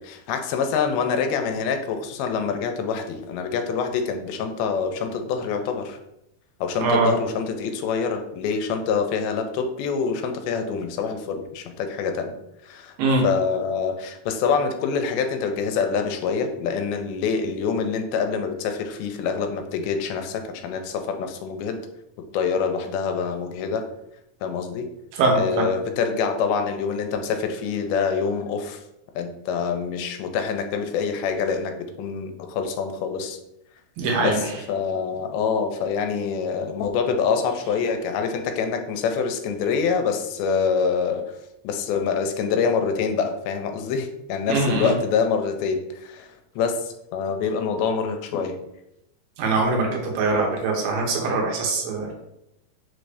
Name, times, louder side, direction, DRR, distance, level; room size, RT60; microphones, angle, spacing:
voice 1, 0.0-6.0 6.6-12.3 12.6-12.9 13.2-21.8 22.3-23.8 24.4-24.9 25.4-28.8 29.2-33.4 34.2-41.2 41.6-48.6, left 6 dB, 85° left, 6 dB, 2.4 m, -26 dB
voice 2, 6.8-7.1 13.0-13.2 25.1-25.7 34.0-34.5 44.5-44.9 49.4-52.2, right 3 dB, 75° right, 0 dB, 2.6 m, -22 dB
5.8 x 2.6 x 3.3 m, 0.83 s
omnidirectional pair, 4.3 m